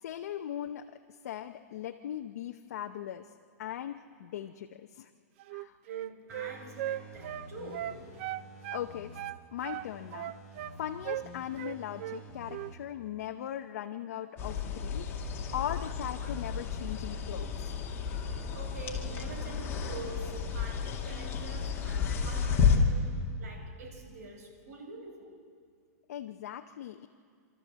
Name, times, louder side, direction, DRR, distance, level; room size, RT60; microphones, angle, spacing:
voice 1, 0.0-3.3 3.6-5.1 5.5-5.8 8.7-9.2 9.5-10.3 10.7-15.1 15.5-17.7 26.1-27.1, left 10 dB, 70° left, 5 dB, 0.8 m, -39 dB
Wind instrument woodwind instrument, 5.4-8.9 9.1-10.8 11.1-11.3 11.6-12.2 12.5-12.7, right 13 dB, 45° right, 0.5 m, -38 dB
voice 2, 5.9-8.1 18.5-25.3, right 2 dB, 75° right, 1 dB, 4.9 m, -46 dB
sound 1, 6.3-9.3 9.7-12.7 13.1-13.2, equal, 10° left, 3.8 m, -50 dB
sound 2, 14.4-22.8, left 6 dB, 25° left, 2.3 m, -32 dB
28.5 x 13.0 x 7.5 m, 2.1 s
hypercardioid pair, 150°, 9 cm